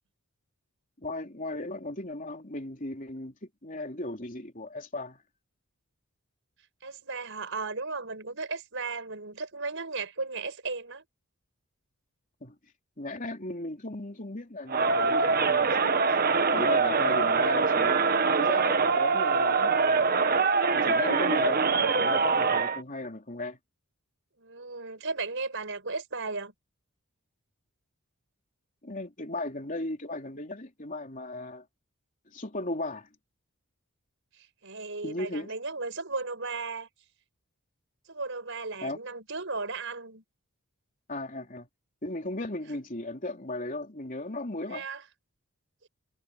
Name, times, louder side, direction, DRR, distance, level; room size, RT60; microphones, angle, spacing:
voice 1, 1.0-3.3 3.6-5.2 12.4-12.6 13.0-16.0 16.5-18.0 18.4-20.1 20.7-23.6 28.8-31.6 32.3-33.1 35.0-35.5 38.8-39.0 41.1-41.7 42.0-44.9, left 2 dB, 35° left, 3.5 m, -36 dB
voice 2, 6.8-11.0 24.4-26.5 34.6-36.9 38.1-40.2 44.7-45.0, right 3 dB, 60° right, 6.1 m, -35 dB
Crowd, 14.7-22.8, right 4 dB, 45° right, 1.3 m, -24 dB
head